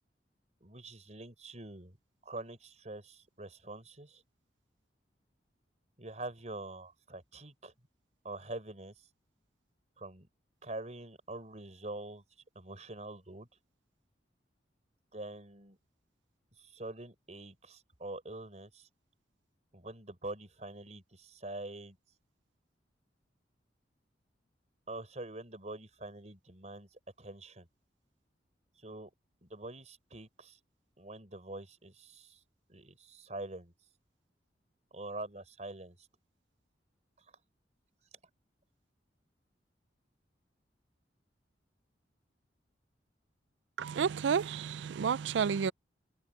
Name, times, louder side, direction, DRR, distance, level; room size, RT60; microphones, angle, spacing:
voice 1, 0.6-2.0 2.2-4.2 6.0-7.7 8.2-8.9 10.0-10.3 10.6-12.2 12.5-13.5 15.1-15.8 16.6-18.9 19.7-22.0 24.9-27.7 28.8-29.1 29.4-30.6 31.0-32.4 32.7-33.7 34.9-36.1, right 2 dB, 40° right, 4.4 m, -45 dB
voice 2, 43.8-45.7, right 7 dB, 80° right, 0.4 m, -30 dB
head